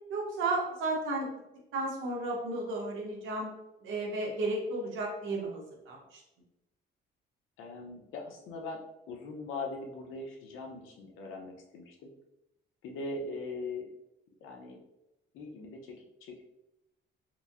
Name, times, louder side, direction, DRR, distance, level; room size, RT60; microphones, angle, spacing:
voice 1, 0.1-1.3 1.7-3.5 3.8-6.2, right 2 dB, 85° right, -1 dB, 1.1 m, -33 dB
voice 2, 7.6-8.8 9.1-12.1 12.8-13.9 14.4-14.8 15.3-16.4, left 3 dB, 90° left, 1 dB, 0.8 m, -41 dB
4.4 x 2.6 x 2.6 m, 0.90 s
cardioid pair, 90°, 20 cm